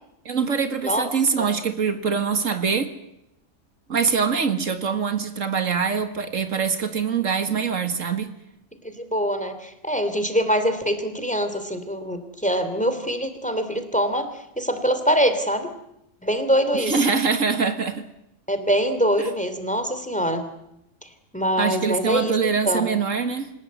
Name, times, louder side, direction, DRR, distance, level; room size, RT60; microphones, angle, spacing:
voice 1, 0.3-2.9 3.9-8.3 16.7-18.1 19.2-19.3 21.6-23.5, right 5 dB, 80° right, 8 dB, 2.1 m, -24 dB
voice 2, 8.8-15.7 16.2-17.0 18.5-20.5 21.3-22.9, equal, 5° left, 8 dB, 3.0 m, -24 dB
28.0 x 17.0 x 9.5 m, 0.83 s
omnidirectional pair, 1.3 m